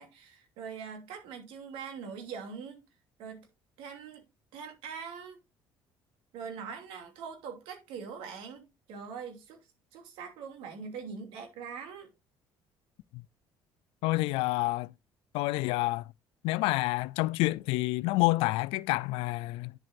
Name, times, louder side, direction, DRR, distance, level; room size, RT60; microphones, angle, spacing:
voice 1, 0.0-2.9 3.2-3.5 3.8-4.2 4.5-5.4 6.3-9.6 9.9-12.1, right 6 dB, 80° right, 2.8 m, -42 dB
voice 2, 14.0-14.9 15.3-16.0 16.4-19.7, left 21 dB, 90° left, 0.4 m, -28 dB
10.0 x 7.6 x 2.6 m
cardioid pair, 135°, 9 cm